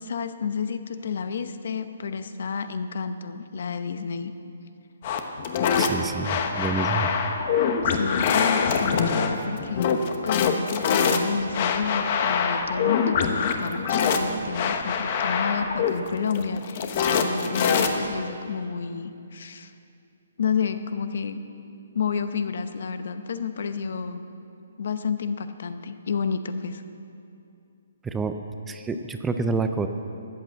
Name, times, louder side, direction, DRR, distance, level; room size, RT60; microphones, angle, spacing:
voice 1, 0.0-4.3 7.8-19.7 20.4-21.4 21.9-24.3 24.8-26.8, left 6 dB, 60° left, 10 dB, 0.8 m, -30 dB
sound 1, 5.0-18.2, left 6 dB, 35° left, 1.0 m, -24 dB
voice 2, 5.8-7.1 7.5-7.7 28.0-28.4 28.6-29.9, right 4 dB, 10° right, 7 dB, 0.4 m, -28 dB
13.5 x 8.7 x 7.9 m, 2.6 s
hypercardioid pair, 165°, 0 cm